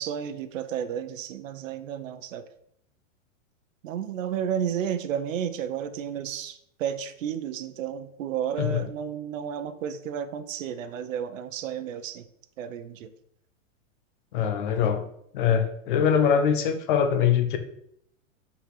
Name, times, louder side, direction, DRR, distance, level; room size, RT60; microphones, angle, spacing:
voice 1, 0.0-2.4 3.8-12.3 12.6-13.1, right 8 dB, 75° right, 10 dB, 0.8 m, -32 dB
voice 2, 14.3-15.1 15.3-17.6, left 8 dB, 40° left, 8 dB, 0.7 m, -23 dB
5.8 x 4.0 x 5.7 m, 0.72 s
supercardioid pair, 175°, 39 cm